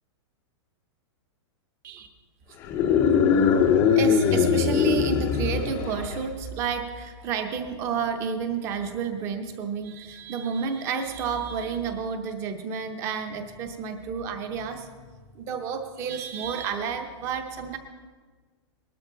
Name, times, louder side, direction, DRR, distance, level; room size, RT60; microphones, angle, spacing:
sound 1, 2.6-6.3, left 7 dB, 15° left, 0.5 m, -21 dB
voice 1, 3.9-14.9 15.3-17.8, right 6 dB, 20° right, 7 dB, 0.8 m, -30 dB
19.5 x 12.5 x 3.9 m, 1.5 s
supercardioid pair, 180°, 15 cm